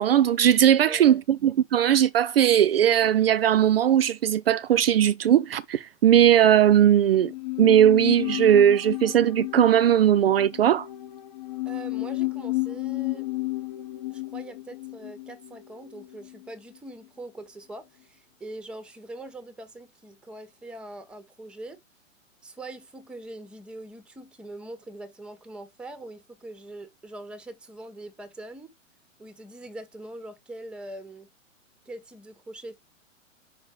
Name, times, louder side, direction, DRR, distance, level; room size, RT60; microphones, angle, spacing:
voice 1, 0.0-7.3 7.6-10.9, right 10 dB, 50° right, 0.6 m, -19 dB
voice 2, 0.9-1.2 11.7-13.3 14.1-21.8 22.4-28.7 29.2-31.3 31.9-32.8, right 2 dB, ahead, 0.7 m, -42 dB
sound 1, 7.1-16.5 16.7-16.8, left 20 dB, 35° left, 0.7 m, -32 dB
5.6 x 5.2 x 4.6 m
figure-of-eight pair, 115°, 39 cm